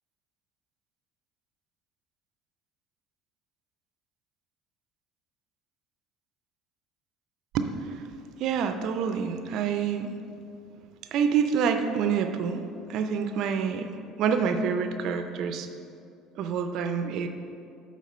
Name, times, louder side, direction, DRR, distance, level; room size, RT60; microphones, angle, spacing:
voice 1, 7.5-8.1 8.4-10.1 11.1-13.9 14.2-15.7 16.4-17.3, right 6 dB, 60° right, 7 dB, 0.4 m, -27 dB
8.3 x 3.7 x 5.4 m, 2.4 s
hypercardioid pair, 70°, 0 cm